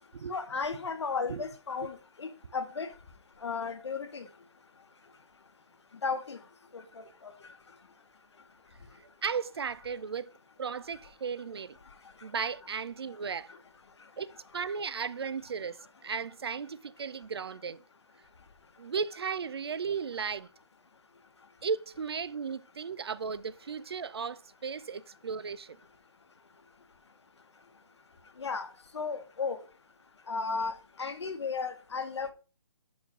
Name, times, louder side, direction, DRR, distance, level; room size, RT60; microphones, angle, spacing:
voice 1, 0.3-2.9 3.4-4.3 6.0-6.4 6.7-6.8 7.2-7.3 28.4-28.7 28.9-29.6 30.3-30.7 31.0-32.3, left 4 dB, 75° left, 1.2 m, -34 dB
voice 2, 9.0-10.3 10.6-11.8 12.2-13.5 14.2-17.8 18.8-20.5 21.6-25.8, right 6 dB, 60° right, 0.4 m, -35 dB
5.5 x 4.8 x 5.2 m
hypercardioid pair, 175°, 15 cm